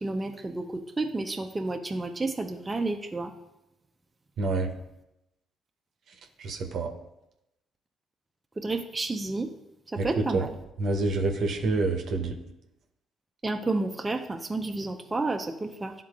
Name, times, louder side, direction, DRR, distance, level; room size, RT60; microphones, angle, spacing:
voice 1, 0.0-3.3 8.6-9.5 9.9-10.6 13.4-15.9, right 2 dB, 25° right, 4 dB, 0.6 m, -31 dB
voice 2, 4.4-4.7 6.4-6.9 10.0-10.4 10.8-12.4, right 3 dB, 65° right, 3 dB, 0.8 m, -27 dB
11.0 x 3.8 x 2.4 m, 0.89 s
hypercardioid pair, 50°, 0 cm